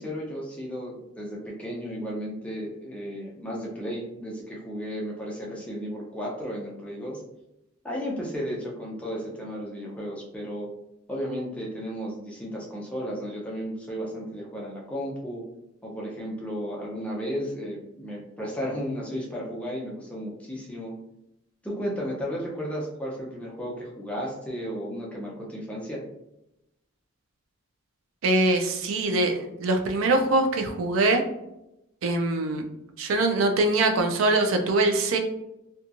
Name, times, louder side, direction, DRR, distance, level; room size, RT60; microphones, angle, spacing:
voice 1, 0.0-7.2 7.8-10.7 11.1-15.4 15.8-20.9 21.6-26.0, equal, 5° left, -4 dB, 0.5 m, -34 dB
voice 2, 28.2-31.2 32.0-32.6 33.0-35.2, right 2 dB, 70° right, 4 dB, 0.4 m, -23 dB
2.8 x 2.3 x 2.5 m, 0.87 s
head